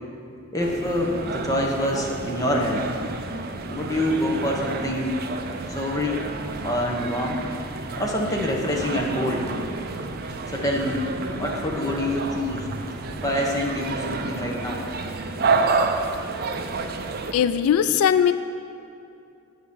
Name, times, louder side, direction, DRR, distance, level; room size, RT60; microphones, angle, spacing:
voice 1, 0.5-2.9 3.6-5.1 5.7-6.2 6.6-7.4 8.0-9.5 10.5-11.0 11.4-12.7 13.2-14.8, left 1 dB, 15° left, -1 dB, 1.0 m, -26 dB
sound 1, 0.6-17.3, right 4 dB, 45° right, 0.5 m, -30 dB
voice 2, 17.3-18.3, left 8 dB, 85° left, 15 dB, 0.3 m, -19 dB
8.7 x 5.0 x 7.0 m, 2.6 s
head